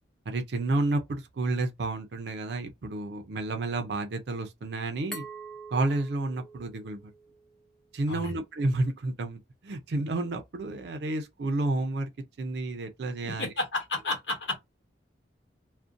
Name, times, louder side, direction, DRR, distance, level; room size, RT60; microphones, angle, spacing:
voice 1, 0.3-5.2 5.7-7.0 7.9-12.1 12.4-13.5, right 2 dB, 65° right, 0.4 m, -30 dB
Glass, 5.1-7.9, right 3 dB, 5° left, 0.5 m, -45 dB
voice 2, 13.2-14.6, left 2 dB, 75° left, 1.1 m, -32 dB
2.5 x 2.1 x 2.5 m
head